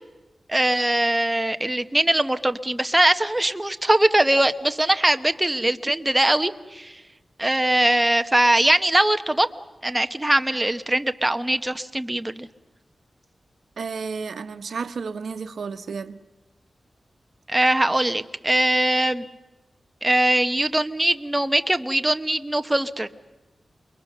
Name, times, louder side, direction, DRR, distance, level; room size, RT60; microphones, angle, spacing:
voice 1, 0.5-6.9 7.4-9.5 9.8-12.5 17.5-19.3 20.0-23.1, right 1 dB, 10° right, 1.1 m, -21 dB
voice 2, 13.8-16.2, right 5 dB, 85° right, 1.0 m, -32 dB
29.0 x 22.5 x 6.8 m
wide cardioid pair, 115°, 0 cm